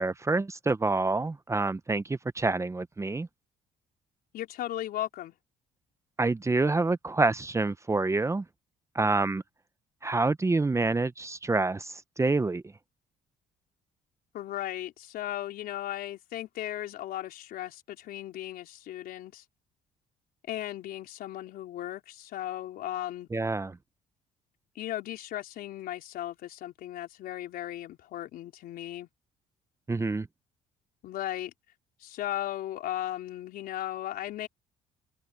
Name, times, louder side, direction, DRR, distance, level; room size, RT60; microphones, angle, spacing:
voice 1, 0.0-3.3 6.2-8.4 8.9-9.4 10.0-12.6 23.3-23.8 29.9-30.3, right 3 dB, 20° right, 0.9 m, -27 dB
voice 2, 4.3-5.4 14.3-19.4 20.5-23.3 24.7-29.1 31.0-31.5 32.0-34.5, left 13 dB, 75° left, 4.1 m, -36 dB
open air
supercardioid pair, 80°, 16 cm